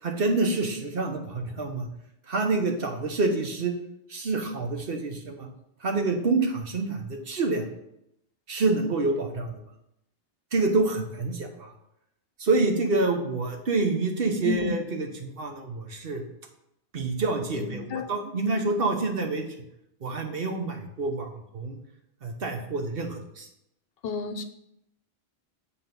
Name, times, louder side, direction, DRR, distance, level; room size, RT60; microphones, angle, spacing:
voice 1, 0.0-1.9 2.3-3.7 4.1-5.5 5.8-7.7 8.5-9.6 10.5-11.7 12.4-16.2 16.9-19.4 20.0-21.8 22.2-23.5, right 3 dB, 65° right, 4 dB, 1.2 m, -27 dB
voice 2, 17.5-18.1 24.0-24.4, left 6 dB, 70° left, 9 dB, 0.9 m, -30 dB
7.9 x 4.1 x 5.3 m, 0.80 s
omnidirectional pair, 1.1 m